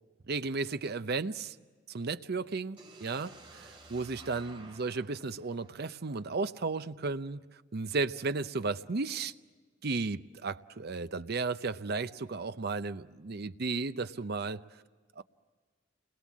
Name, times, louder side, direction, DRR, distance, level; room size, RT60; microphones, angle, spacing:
voice 1, 0.3-1.6 1.9-7.4 7.7-9.3 9.8-14.6 15.2-15.3, right 3 dB, 55° right, 0.7 m, -34 dB
sound 1, 2.8-6.7, right 2 dB, 25° right, 2.7 m, -54 dB
29.0 x 21.5 x 7.4 m
head